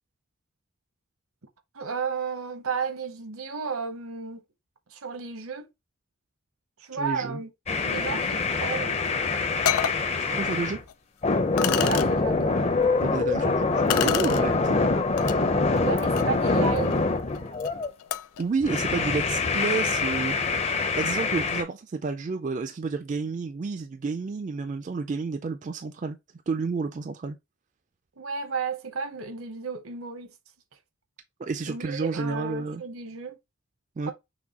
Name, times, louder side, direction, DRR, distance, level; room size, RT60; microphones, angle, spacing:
voice 1, 1.7-4.4 4.9-5.7 6.8-7.5 7.8-9.0 11.6-12.6 15.8-17.0 28.2-30.3 31.7-33.4 34.1-34.2, right 5 dB, 75° right, 0.9 m, -33 dB
voice 2, 6.9-7.4 10.3-10.8 13.0-14.8 18.4-20.3 21.0-26.2 26.5-27.4 31.4-32.8 34.0-34.1, right 4 dB, 35° right, 0.3 m, -30 dB
sound 1, 7.7-10.8 11.2-17.9 18.6-21.6, left 3 dB, 30° left, 0.5 m, -25 dB
sound 2, 9.0-9.1 9.6-10.0 10.9-11.0 11.6-12.1 13.9-14.4 15.2-15.4 15.8-18.4, left 10 dB, 85° left, 0.4 m, -30 dB
6.0 x 2.2 x 4.0 m
head